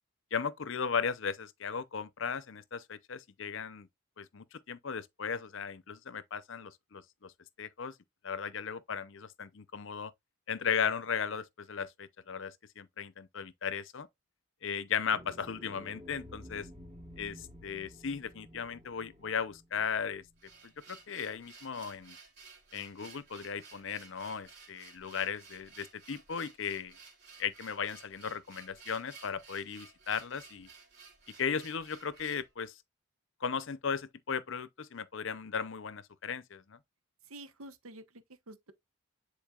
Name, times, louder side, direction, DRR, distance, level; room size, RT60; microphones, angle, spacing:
voice 1, 0.3-3.9 4.2-7.3 7.6-7.9 8.2-10.1 10.5-14.1 14.6-16.7 17.2-20.2 20.6-22.2 22.7-27.0 27.4-30.7 31.4-32.7 33.4-36.8, left 6 dB, 60° left, 0.6 m, -36 dB
sound 1, 15.1-20.8, equal, 30° right, 2.7 m, -52 dB
sound 2, 20.3-32.5, right 5 dB, 50° right, 3.2 m, -55 dB
voice 2, 37.3-38.7, right 1 dB, 75° right, 1.0 m, -49 dB
10.0 x 4.2 x 2.4 m
head